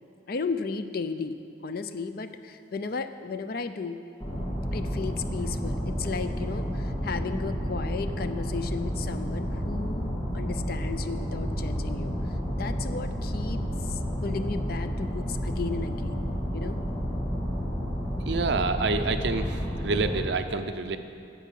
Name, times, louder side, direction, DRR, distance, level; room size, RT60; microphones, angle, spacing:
voice 1, 0.3-1.4 1.6-4.0 4.7-12.1 12.6-16.2 16.5-16.8, left 4 dB, 55° left, 10 dB, 0.5 m, -34 dB
sound 1, 4.2-20.2, equal, 20° left, 1.8 m, -31 dB
voice 2, 18.3-21.0, right 4 dB, 65° right, 8 dB, 0.6 m, -28 dB
9.3 x 7.1 x 7.5 m, 2.6 s
head